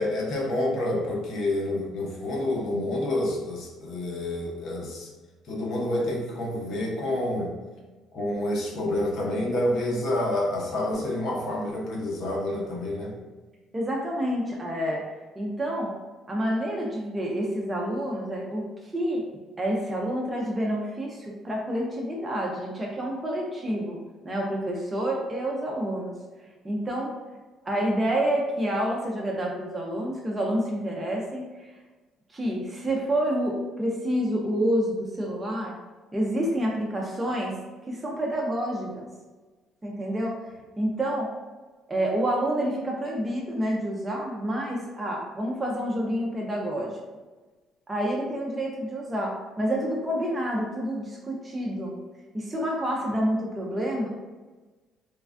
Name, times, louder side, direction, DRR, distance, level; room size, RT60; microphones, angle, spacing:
voice 1, 0.0-5.1 5.5-7.5 8.1-13.2, left 1 dB, 55° left, -2 dB, 0.8 m, -28 dB
voice 2, 13.7-15.1 15.4-15.9 16.3-18.7 18.9-19.2 19.6-24.0 24.2-26.1 26.6-27.1 27.6-31.7 32.3-35.8 36.1-37.5 37.9-39.1 39.8-40.4 40.8-41.3 41.9-46.9 47.9-52.0 52.3-54.1, equal, 15° right, -2 dB, 0.4 m, -28 dB
3.1 x 2.2 x 2.4 m, 1.3 s
cardioid pair, 130°, 0 cm